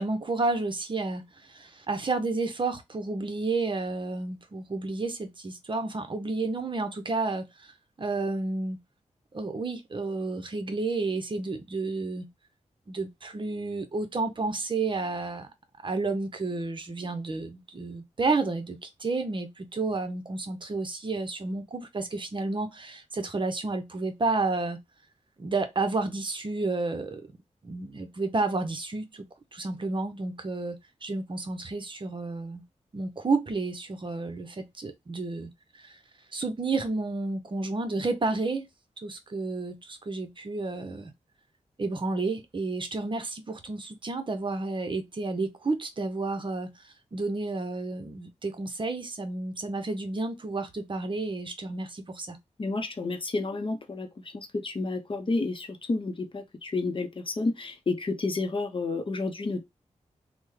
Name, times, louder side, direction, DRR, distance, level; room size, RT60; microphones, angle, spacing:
voice 1, 0.0-7.7 8.0-8.8 9.3-12.3 12.9-15.5 15.8-24.8 25.4-27.2 27.6-29.3 29.5-32.6 32.9-36.0 36.3-38.7 39.0-41.1 41.8-52.4, right 3 dB, 40° right, 0.7 m, -31 dB
voice 2, 52.6-59.6, left 3 dB, 40° left, 0.7 m, -30 dB
3.4 x 2.1 x 3.1 m
wide cardioid pair, 85°, 13 cm